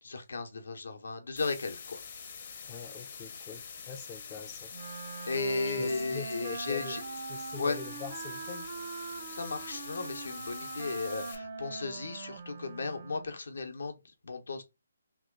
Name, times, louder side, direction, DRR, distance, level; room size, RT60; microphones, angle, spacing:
voice 1, 0.0-2.0 5.3-7.0 7.6-7.8 9.3-14.0 14.2-14.6, left 3 dB, 75° left, 0.8 m, -35 dB
sound 1, 1.4-11.4, left 6 dB, 40° left, 0.7 m, -45 dB
voice 2, 2.6-4.7 5.8-7.0 7.3-8.7, left 6 dB, 15° left, 0.4 m, -43 dB
Wind instrument woodwind instrument, 4.7-13.4, right 5 dB, 45° right, 0.5 m, -42 dB
2.9 x 2.3 x 3.5 m
hypercardioid pair, 165°, 0 cm